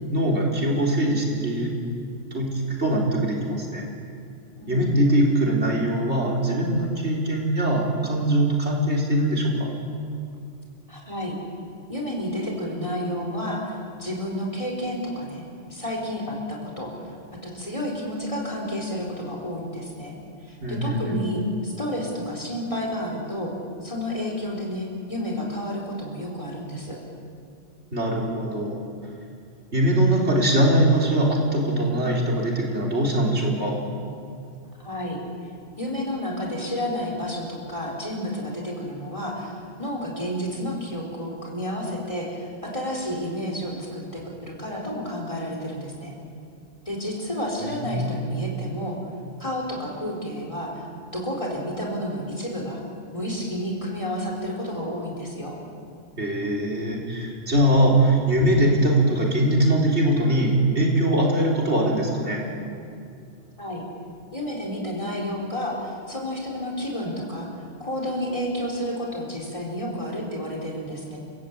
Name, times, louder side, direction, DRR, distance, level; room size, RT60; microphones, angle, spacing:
voice 1, 0.1-1.7 2.3-2.5 2.8-3.9 4.7-9.7 20.6-21.2 27.9-28.8 29.7-33.8 47.6-48.1 56.2-62.5, right 1 dB, 70° right, -2 dB, 4.3 m, -22 dB
voice 2, 4.6-5.0 10.9-11.3 11.9-15.4 15.7-16.9 17.4-20.2 20.4-23.5 23.8-27.0 34.8-35.2 35.8-46.1 46.8-49.0 49.4-50.8 51.1-52.8 53.1-55.6 63.6-63.8 64.3-67.5 67.8-71.2, equal, 30° left, -1 dB, 4.6 m, -30 dB
29.0 x 16.5 x 8.5 m, 2.4 s
omnidirectional pair, 1.2 m